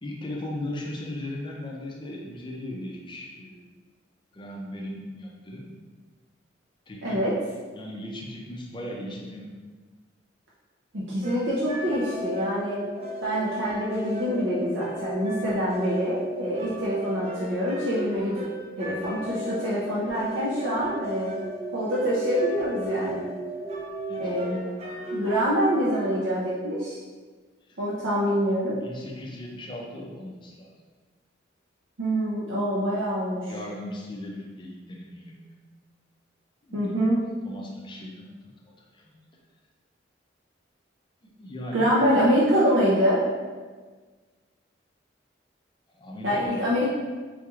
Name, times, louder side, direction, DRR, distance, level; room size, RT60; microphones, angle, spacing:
voice 1, 0.0-3.6 4.3-5.7 6.9-7.2 7.7-9.5 24.1-24.3 27.7-27.8 28.4-30.7 33.5-35.4 36.7-36.9 37.5-39.1 41.2-41.9 45.9-46.6, left 1 dB, 25° left, -1 dB, 0.5 m, -38 dB
voice 2, 7.0-7.3 10.9-12.8 13.2-18.5 18.8-21.3 21.7-23.3 24.2-24.6 25.1-27.0 27.8-28.7 32.0-33.5 36.7-37.2 41.7-43.2 46.2-46.9, equal, 85° right, -8 dB, 0.7 m, -25 dB
sound 1, 11.2-25.5, right 1 dB, 35° right, 0.6 m, -35 dB
4.0 x 3.0 x 2.4 m, 1.4 s
head